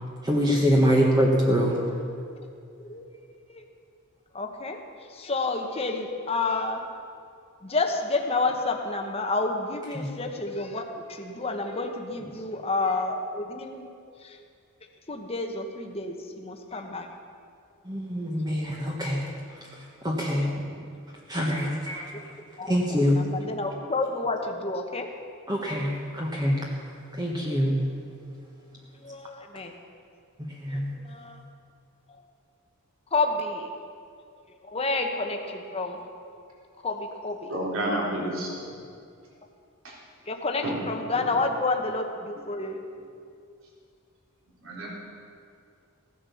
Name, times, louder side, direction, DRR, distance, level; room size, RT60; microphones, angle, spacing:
voice 1, 0.2-1.8 9.9-10.1 17.8-19.2 19.5-20.5 21.3-22.1 22.6-23.2 25.5-26.6 27.1-27.9 30.5-30.9, equal, 20° right, -2 dB, 1.3 m, -25 dB
voice 2, 4.3-4.8 5.1-6.8 7.6-13.9 14.2-14.4 15.1-17.1 20.4-20.5 22.1-22.2 22.6-22.7 23.1-25.1 29.0-29.7 30.7-31.4 33.1-33.7 34.7-36.0 36.8-37.5 40.3-42.8, left 3 dB, 25° left, 3 dB, 1.1 m, -29 dB
voice 3, 37.5-38.8 39.8-40.0 40.6-40.8 41.1-41.3 44.6-44.9, right 1 dB, 65° right, -4 dB, 3.8 m, -30 dB
16.0 x 9.9 x 7.0 m, 2.4 s
head